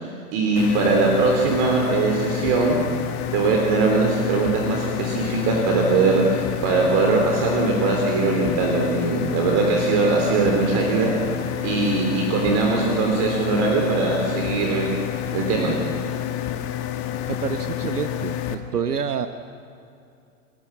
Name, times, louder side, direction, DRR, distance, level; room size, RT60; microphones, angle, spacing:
voice 1, 0.0-2.8 3.3-11.1 11.6-14.9 15.3-15.7, right 3 dB, 35° right, 0 dB, 3.5 m, -21 dB
sound 1, 0.6-18.5, left 12 dB, 30° left, 1.4 m, -29 dB
voice 2, 17.4-19.3, right 7 dB, 75° right, 9 dB, 1.1 m, -27 dB
28.5 x 12.5 x 7.4 m, 2.5 s
figure-of-eight pair, 105°, 46 cm